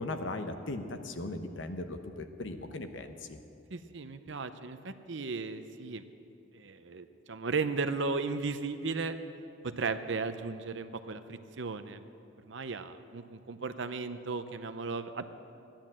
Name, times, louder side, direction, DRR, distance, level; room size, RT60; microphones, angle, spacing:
voice 1, 0.0-3.4, left 2 dB, 65° left, 7 dB, 0.9 m, -38 dB
voice 2, 3.7-6.0 6.5-9.2 9.6-12.0 12.5-15.2, right 4 dB, 65° right, 10 dB, 0.7 m, -35 dB
14.0 x 10.5 x 7.5 m, 2.6 s
head